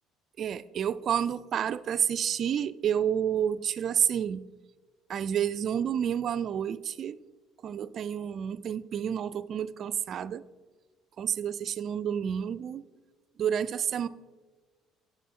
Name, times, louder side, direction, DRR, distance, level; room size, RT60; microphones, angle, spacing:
voice 1, 0.4-4.4 5.1-7.2 7.6-10.5 11.2-12.8 13.4-14.1, right 9 dB, 45° right, 15 dB, 0.3 m, -29 dB
9.4 x 6.6 x 3.6 m, 1.3 s
cardioid pair, 120°, 0 cm